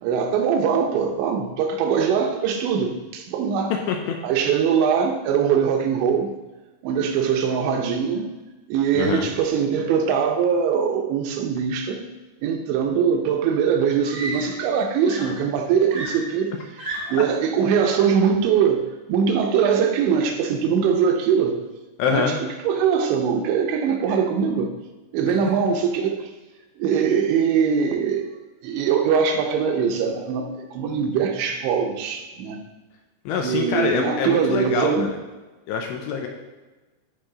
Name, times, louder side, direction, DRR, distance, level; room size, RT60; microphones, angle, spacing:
voice 1, 0.0-3.7 4.2-6.3 6.8-8.3 8.7-12.0 12.4-16.5 17.1-21.6 22.1-22.3 22.6-24.7 25.1-26.3 26.8-28.3 28.6-32.6 33.4-35.1, right 7 dB, 80° right, 4 dB, 2.8 m, -22 dB
voice 2, 8.9-9.3 22.0-22.4 33.3-35.2 35.7-36.3, left 5 dB, 80° left, 2 dB, 2.7 m, -24 dB
Screaming, 13.2-13.3 14.0-14.8 15.0-17.3 18.3-18.6, right 2 dB, 45° right, 1.3 m, -34 dB
13.5 x 4.8 x 3.8 m, 1.2 s
omnidirectional pair, 5.4 m